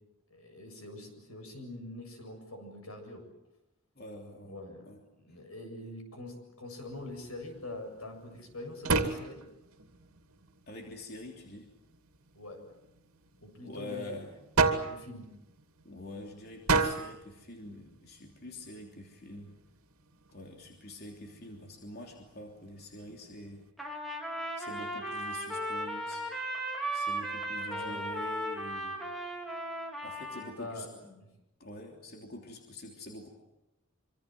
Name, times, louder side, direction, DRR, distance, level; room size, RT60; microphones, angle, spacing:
voice 1, 0.3-3.2 4.5-4.9 5.2-9.4 12.4-12.6 13.4-14.2 14.8-15.3 27.7-28.0 30.4-30.9 31.2-31.3, left 1 dB, 90° left, 5 dB, 7.5 m, -44 dB
voice 2, 3.9-5.0 5.3-5.4 10.7-11.7 13.6-14.5 15.8-19.6 20.3-23.7 24.5-26.3 26.9-29.0 30.0-31.2 31.6-33.3, left 1 dB, 45° left, 2 dB, 3.2 m, -46 dB
sound 1, 6.8-23.7, right 4 dB, 85° right, 2.5 m, -36 dB
Trumpet, 23.8-30.5, right 1 dB, ahead, 4.0 m, -36 dB
26.0 x 25.5 x 7.7 m, 0.92 s
head